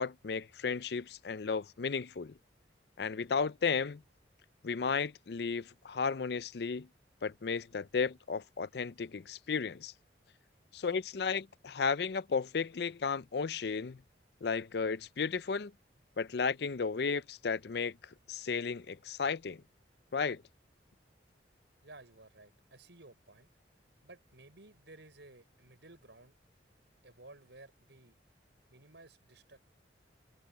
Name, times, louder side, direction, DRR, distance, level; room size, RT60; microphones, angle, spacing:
voice 1, 0.0-2.3 3.0-4.0 4.6-6.9 7.2-9.9 10.7-14.0 14.4-15.7 16.2-18.0 18.3-19.6 20.1-20.4, left 5 dB, 60° left, 0.5 m, -34 dB
voice 2, 21.8-23.5 24.0-26.3 27.0-28.2 28.7-29.6, right 2 dB, 75° right, 5.1 m, -56 dB
head